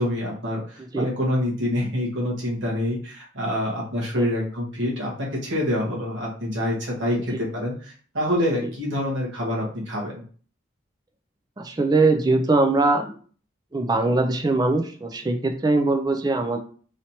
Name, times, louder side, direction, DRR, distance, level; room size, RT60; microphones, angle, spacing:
voice 1, 0.0-10.2, left 1 dB, 75° right, -3 dB, 1.2 m, -26 dB
voice 2, 11.6-13.1 13.7-16.6, right 2 dB, 20° right, 6 dB, 0.3 m, -21 dB
3.2 x 2.8 x 2.7 m, 0.43 s
head